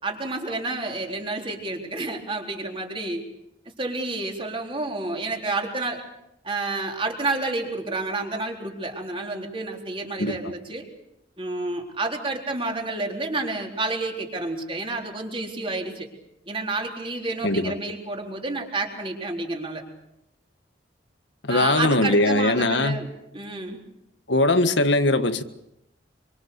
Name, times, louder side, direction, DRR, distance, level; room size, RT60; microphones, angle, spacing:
voice 1, 0.0-3.2 3.8-6.0 6.4-10.8 11.4-16.1 16.5-19.8 21.5-23.1 23.3-23.8, right 2 dB, 30° right, 4.0 m, -30 dB
voice 2, 17.4-17.8 21.4-23.1 24.3-25.4, left 2 dB, 70° left, 1.6 m, -21 dB
26.5 x 25.0 x 6.9 m
head